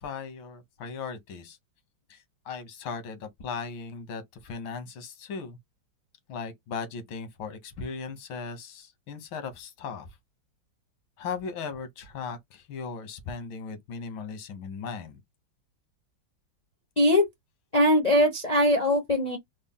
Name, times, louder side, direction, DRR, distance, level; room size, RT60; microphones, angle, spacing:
voice 1, 0.0-1.6 2.1-5.6 6.3-10.1 11.2-15.2, left 5 dB, 85° left, 1.8 m, -37 dB
voice 2, 17.0-17.3 17.7-19.4, left 1 dB, 50° left, 0.4 m, -21 dB
4.2 x 2.1 x 3.6 m
omnidirectional pair, 2.1 m